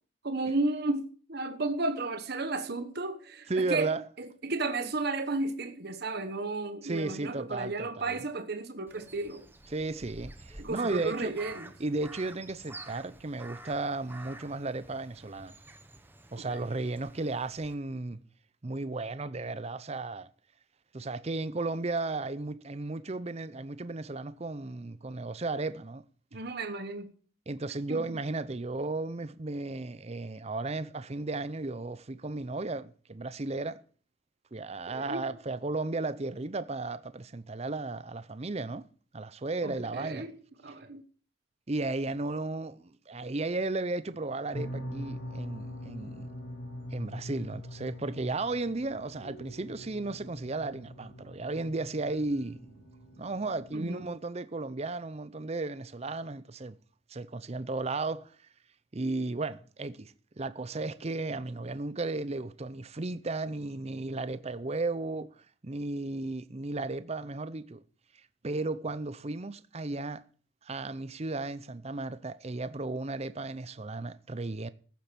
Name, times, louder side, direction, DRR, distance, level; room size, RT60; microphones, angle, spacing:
voice 1, 0.2-3.9 4.2-9.4 10.6-11.7 16.4-16.6 26.3-27.1 27.9-28.0 34.9-35.2 39.6-40.3 40.6-41.0 53.7-54.1, right 2 dB, 50° right, 1.2 m, -33 dB
voice 2, 3.5-4.1 6.8-8.2 9.7-11.4 11.8-15.5 16.3-18.2 18.6-20.3 20.9-26.0 27.5-33.8 34.5-38.9 39.1-40.3 41.7-46.3 46.9-52.9 53.2-56.8 57.1-58.4 58.9-67.8 68.4-70.3 70.6-74.7, right 2 dB, 30° right, 0.6 m, -34 dB
Crow, 8.9-17.7, right 2 dB, 10° right, 1.0 m, -50 dB
sound 1, 44.5-53.8, equal, 55° left, 7.1 m, -43 dB
14.5 x 7.6 x 6.9 m
head